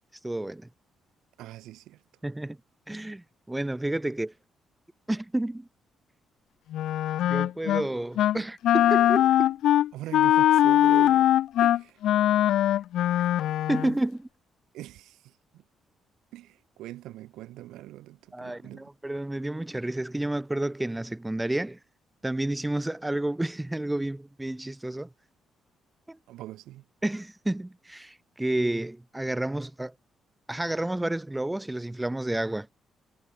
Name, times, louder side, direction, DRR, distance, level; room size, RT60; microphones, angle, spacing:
voice 1, 0.1-0.7 2.2-2.6 2.9-4.3 5.1-5.7 7.3-9.5 13.7-14.3 18.3-21.8 22.2-25.1 26.1-26.2 27.0-29.9 30.5-32.7, right 1 dB, 10° right, 1.6 m, -30 dB
voice 2, 1.4-2.0 9.9-11.3 11.6-12.0 14.7-15.6 16.3-18.8 26.3-26.8, right 15 dB, 90° right, 5.4 m, -41 dB
Wind instrument woodwind instrument, 6.7-7.9 8.2-8.4 8.6-13.9, left 12 dB, 80° left, 1.6 m, -21 dB
cardioid pair, 90°, 0 cm